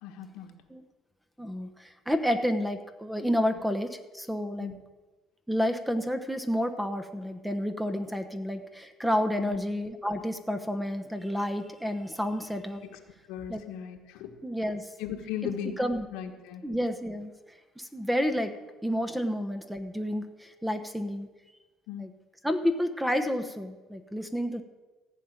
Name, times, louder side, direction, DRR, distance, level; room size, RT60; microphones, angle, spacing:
voice 1, 0.0-0.5 4.6-4.8 9.4-9.6 13.3-14.3 15.0-15.8 16.1-16.6 21.9-22.1, left 9 dB, 85° left, 4 dB, 1.5 m, -37 dB
voice 2, 1.4-4.7 5.5-12.8 13.5-13.6 14.4-14.9 15.8-16.1 16.6-17.3 17.8-18.5 18.8-21.3 22.0-22.1 22.4-24.6, equal, 5° right, 8 dB, 1.0 m, -30 dB
15.0 x 5.6 x 9.0 m, 1.2 s
cardioid pair, 120°, 0 cm